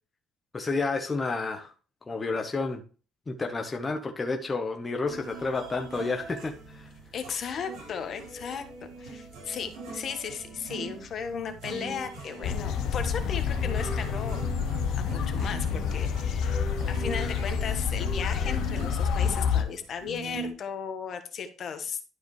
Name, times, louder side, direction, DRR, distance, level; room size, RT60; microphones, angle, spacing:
voice 1, 0.5-1.7 2.1-2.8 3.3-6.9, left 3 dB, 20° left, 3 dB, 1.0 m, -30 dB
sound 1, 5.1-20.5, right 3 dB, 80° right, 4.3 m, -42 dB
voice 2, 7.1-14.4 15.0-22.0, left 6 dB, 50° left, 7 dB, 1.3 m, -36 dB
sound 2, 12.4-19.6, left 7 dB, 75° left, 0.9 m, -28 dB
12.0 x 4.9 x 3.2 m, 0.36 s
cardioid pair, 125°, 0 cm